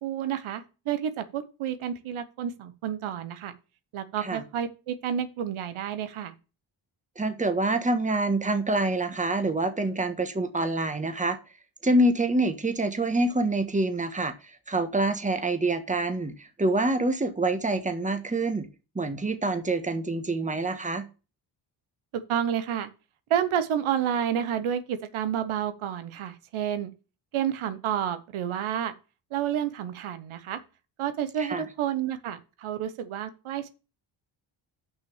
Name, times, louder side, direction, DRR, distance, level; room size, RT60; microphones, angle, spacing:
voice 1, 0.0-3.5 3.9-6.3 22.1-22.9 23.3-26.9 27.3-28.9 29.3-30.6 31.0-33.7, right 9 dB, 85° right, 1.1 m, -30 dB
voice 2, 7.2-11.4 11.8-18.7 18.9-21.1 31.4-31.6, right 2 dB, 15° right, 1.4 m, -26 dB
6.2 x 5.8 x 7.1 m
cardioid pair, 85°, 47 cm